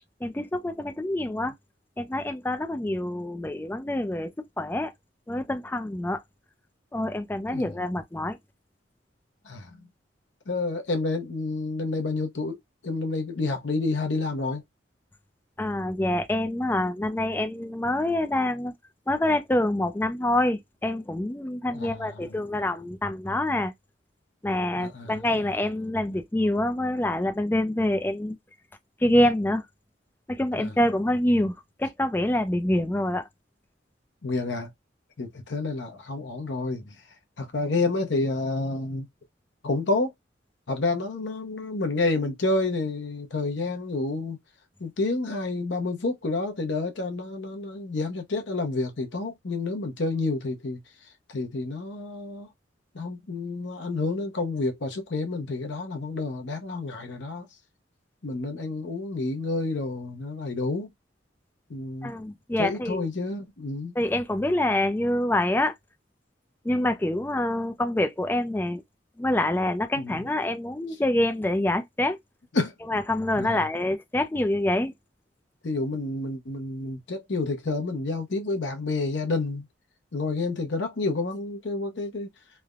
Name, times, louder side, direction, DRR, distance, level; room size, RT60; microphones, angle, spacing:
voice 1, 0.2-1.5 2.0-4.3 4.6-4.9 5.3-6.2 6.9-8.4 15.6-18.7 19.1-23.7 24.4-28.4 29.0-29.6 30.3-33.3 62.0-63.0 64.0-65.7 66.6-68.8 69.2-72.2 72.9-74.9, left 1 dB, 10° left, 0.3 m, -26 dB
voice 2, 9.4-9.9 10.5-12.6 12.8-14.6 21.7-22.4 24.7-25.4 30.5-30.7 34.2-34.7 35.2-37.0 37.4-39.1 39.6-40.1 40.7-44.4 44.8-52.5 52.9-57.5 58.2-60.9 61.7-62.1 62.6-63.9 70.0-70.2 72.5-72.7 73.3-73.7 75.6-79.7 80.1-82.3, left 3 dB, 70° left, 0.7 m, -29 dB
3.2 x 2.1 x 2.3 m
head